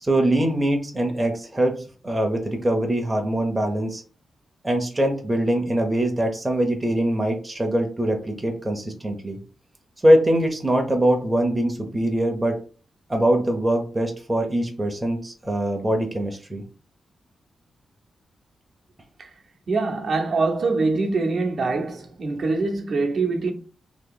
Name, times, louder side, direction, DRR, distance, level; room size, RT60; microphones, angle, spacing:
voice 1, 0.0-4.0 4.6-9.4 10.0-12.6 13.1-16.6, right 1 dB, 15° right, 0.7 m, -22 dB
voice 2, 19.7-23.5, right 3 dB, 55° right, 0.8 m, -24 dB
2.8 x 2.8 x 3.8 m
wide cardioid pair, 145°, 0 cm